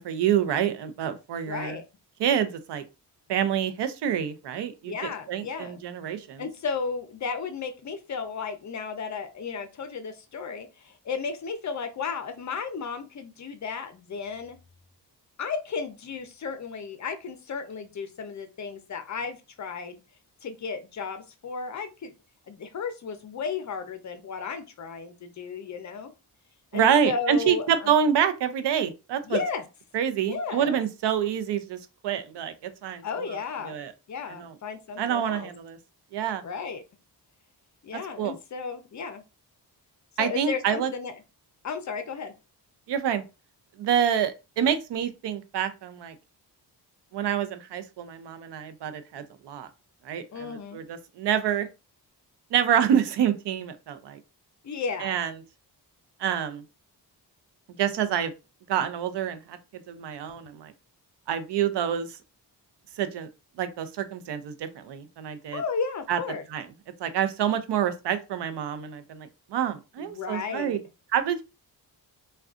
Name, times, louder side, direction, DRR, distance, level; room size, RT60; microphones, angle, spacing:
voice 1, 0.0-1.8 2.2-2.8 3.3-6.4 26.7-29.4 29.9-31.8 32.0-33.0 33.6-33.9 34.4-34.5 35.0-35.8 36.1-36.4 38.2-38.3 40.2-40.9 42.9-43.2 43.8-46.1 47.1-49.7 50.0-51.7 52.5-54.2 55.0-55.3 56.2-56.6 57.8-58.3 58.7-59.6 59.9-60.7 61.3-62.1 63.0-63.3 63.6-65.6 66.1-66.2 66.5-66.6 67.0-70.8 71.1-71.4, right 9 dB, 80° right, 11 dB, 0.6 m, -27 dB
voice 2, 1.5-1.8 4.8-5.8 6.4-14.6 15.4-20.0 20.4-22.1 22.5-26.1 26.7-27.9 29.2-29.6 30.3-30.8 33.0-33.8 34.1-35.5 36.4-36.8 37.8-39.2 40.2-41.1 41.6-42.3 50.3-50.8 54.6-55.1 65.5-66.4 70.0-70.8, left 5 dB, 45° left, 8 dB, 0.5 m, -34 dB
3.6 x 2.2 x 2.4 m, 0.28 s
wide cardioid pair, 155°, 41 cm